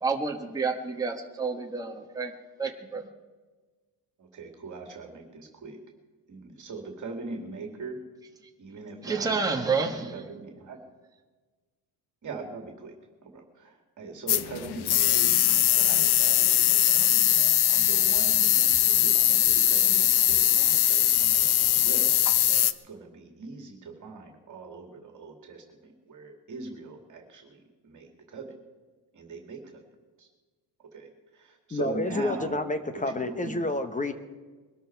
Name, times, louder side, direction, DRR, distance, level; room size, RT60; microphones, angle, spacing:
voice 1, 0.0-2.3 2.6-3.0 9.0-10.2, right 4 dB, 10° right, 2 dB, 1.3 m, -29 dB
voice 2, 4.2-5.8 6.3-8.0 8.6-10.8 12.2-12.9 13.2-17.4 17.7-22.2 22.5-28.5 29.1-29.8 30.2-30.3 30.9-31.1 31.3-32.6 32.9-33.7, right 4 dB, 40° right, 3 dB, 2.5 m, -41 dB
sound 1, 14.3-22.7, left 12 dB, 60° left, 0.8 m, -21 dB
voice 3, 31.7-34.1, left 2 dB, 15° left, 9 dB, 1.1 m, -29 dB
22.0 x 13.0 x 4.6 m, 1.3 s
cardioid pair, 130°, 45 cm